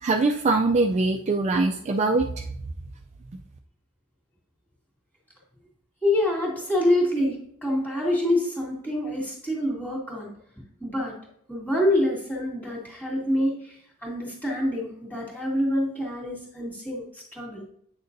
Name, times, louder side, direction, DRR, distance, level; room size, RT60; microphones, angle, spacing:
voice 1, 0.0-2.4, right 3 dB, 30° right, 2 dB, 0.4 m, -22 dB
voice 2, 6.0-10.3 10.8-11.2 11.5-17.7, left 1 dB, 5° left, -4 dB, 2.4 m, -26 dB
8.8 x 6.5 x 2.6 m, 0.67 s
head